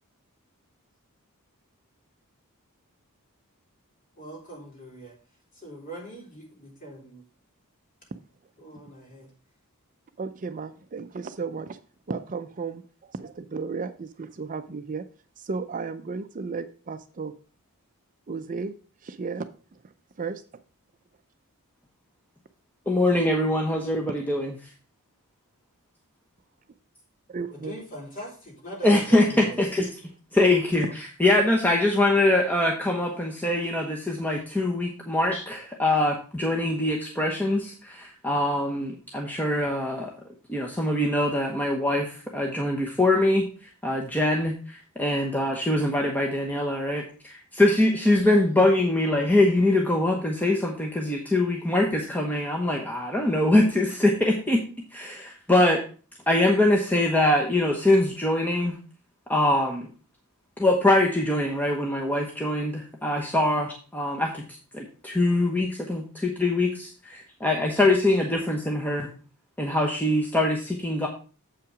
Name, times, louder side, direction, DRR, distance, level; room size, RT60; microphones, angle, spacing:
voice 1, 4.2-5.2 5.5-7.2 8.6-9.3 27.5-29.6, right 1 dB, 40° left, -2 dB, 3.6 m, -41 dB
voice 2, 10.2-11.8 12.1-15.0 15.4-17.3 18.3-18.7 19.0-19.5 20.2-20.4 27.3-27.8, right 4 dB, 35° right, 10 dB, 0.5 m, -34 dB
voice 3, 22.9-24.5 28.8-29.9 30.3-40.1 40.5-54.6 54.9-55.8 56.3-58.8 59.3-59.9 60.6-64.4 64.7-69.1 69.6-71.1, left 1 dB, 10° left, -1 dB, 1.0 m, -23 dB
7.8 x 5.7 x 4.9 m, 0.38 s
head